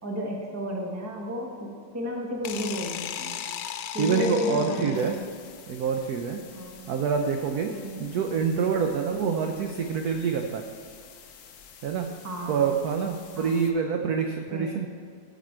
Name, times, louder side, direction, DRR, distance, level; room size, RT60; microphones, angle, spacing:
voice 1, 0.0-3.3 3.9-5.1 6.5-6.8 7.7-8.0 9.1-9.3 12.2-12.7 13.3-13.6 14.5-14.7, left 1 dB, 10° right, 0 dB, 0.7 m, -32 dB
sound 1, 2.4-5.4, left 10 dB, 90° left, 1.4 m, -36 dB
voice 2, 4.0-5.2 5.7-6.4 6.9-7.7 8.0-10.6 11.8-12.1 12.5-14.9, right 6 dB, 75° right, 4 dB, 0.9 m, -26 dB
sound 2, 4.9-13.7, left 7 dB, 65° left, 1.0 m, -50 dB
13.5 x 5.1 x 4.4 m, 2.2 s
omnidirectional pair, 2.2 m